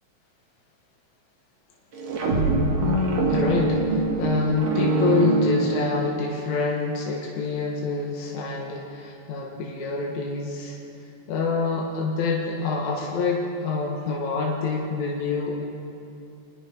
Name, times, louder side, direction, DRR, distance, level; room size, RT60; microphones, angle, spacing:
sound 1, 1.9-6.2, right 2 dB, 60° right, 3.4 m, -23 dB
voice 1, 2.8-10.8 11.3-15.6, left 4 dB, 70° left, -2 dB, 3.1 m, -26 dB
28.0 x 20.0 x 4.7 m, 2.7 s
omnidirectional pair, 3.3 m